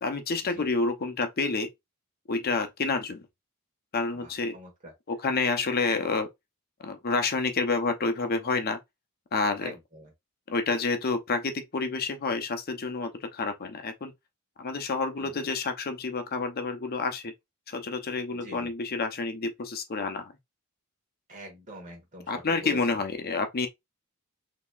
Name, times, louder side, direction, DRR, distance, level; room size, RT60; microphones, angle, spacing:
voice 1, 0.0-1.7 2.3-3.2 3.9-4.5 5.1-6.3 6.8-8.8 9.3-9.7 10.5-14.1 14.6-17.3 17.7-20.3 22.3-23.7, left 4 dB, 45° left, 0.6 m, -29 dB
voice 2, 4.1-4.9 9.6-10.1 15.2-15.5 18.3-18.7 21.3-22.8, equal, 35° right, 1.4 m, -45 dB
4.0 x 2.8 x 2.4 m
head